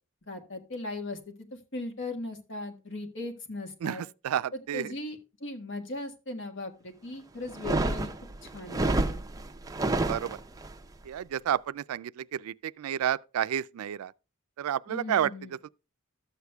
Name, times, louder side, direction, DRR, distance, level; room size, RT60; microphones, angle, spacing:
voice 1, 0.3-1.5 1.7-4.0 4.5-8.1 8.4-9.2 14.9-15.6, left 2 dB, 55° left, 1.6 m, -38 dB
voice 2, 3.8-4.9 10.1-10.4 11.0-14.1 14.6-15.3 15.6-15.7, right 9 dB, 90° right, 0.3 m, -30 dB
sound 1, 7.5-10.7, right 2 dB, 15° right, 0.5 m, -29 dB
13.0 x 8.1 x 2.3 m
head